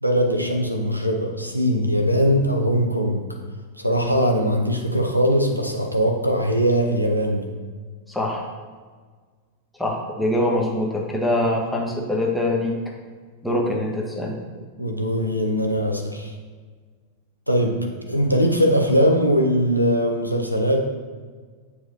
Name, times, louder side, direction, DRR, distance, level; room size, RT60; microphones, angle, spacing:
voice 1, 0.0-3.2 3.8-7.4 14.8-16.3 17.5-17.8 18.1-20.8, equal, 90° right, 2 dB, 0.6 m, -21 dB
voice 2, 8.1-8.5 9.8-12.7 13.4-14.3, left 1 dB, 5° left, -2 dB, 1.1 m, -23 dB
8.2 x 4.7 x 2.7 m, 1.5 s
figure-of-eight pair, 90°, 0 cm